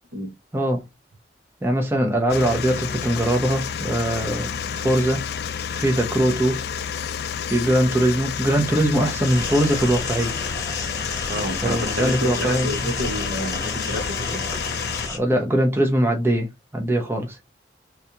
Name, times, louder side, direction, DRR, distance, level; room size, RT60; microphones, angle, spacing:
voice 1, 0.5-0.9 1.6-5.2 5.7-6.6 7.5-10.3 11.6-12.9 15.1-17.4, right 1 dB, 15° right, 0.7 m, -21 dB
sound 1, 2.3-15.1, left 7 dB, 60° left, 0.4 m, -30 dB
sound 2, 9.2-15.2, left 3 dB, 20° left, 0.9 m, -31 dB
voice 2, 11.3-14.4, equal, 60° right, 1.2 m, -29 dB
3.4 x 3.2 x 2.8 m
head